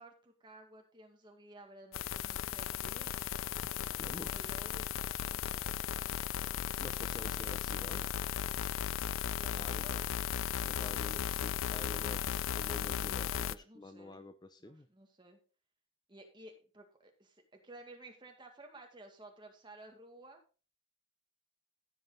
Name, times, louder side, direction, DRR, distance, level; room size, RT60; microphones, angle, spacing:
voice 1, 0.0-3.1 4.1-4.9 5.6-6.0 7.2-7.6 9.4-10.2 11.0-11.3 13.2-14.2 14.6-15.4 16.1-20.4, right 2 dB, 25° right, 3 dB, 1.9 m, -55 dB
sound 1, 1.9-13.5, left 9 dB, 75° left, 0.4 m, -36 dB
voice 2, 4.0-4.5 6.8-8.1 9.5-9.8 10.6-14.9, left 1 dB, 20° left, 9 dB, 0.6 m, -49 dB
15.0 x 5.6 x 4.0 m, 0.35 s
head